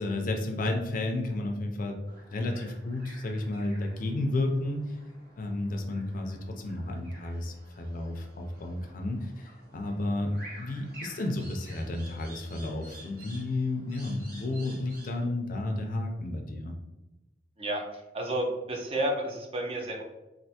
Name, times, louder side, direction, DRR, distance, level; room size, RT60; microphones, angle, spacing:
voice 1, 0.0-2.0 2.3-5.0 5.4-10.3 10.6-16.7, left 2 dB, 50° left, 3 dB, 0.4 m, -32 dB
sound 1, 2.0-15.3, right 1 dB, 60° right, 1.1 m, -51 dB
voice 2, 17.6-20.0, right 1 dB, 35° right, 2 dB, 0.5 m, -31 dB
3.3 x 2.5 x 2.7 m, 0.99 s
head